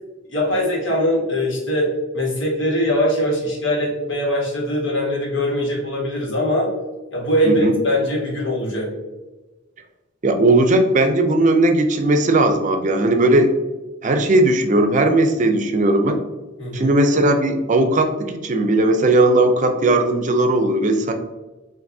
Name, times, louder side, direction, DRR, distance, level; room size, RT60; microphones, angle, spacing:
voice 1, 0.3-6.7 7.1-8.9 16.6-16.9, equal, 80° left, -3 dB, 1.5 m, -21 dB
voice 2, 10.2-13.5 14.0-16.2 16.7-21.1, right 2 dB, 40° right, 6 dB, 0.5 m, -17 dB
5.9 x 2.6 x 2.7 m, 1.1 s
head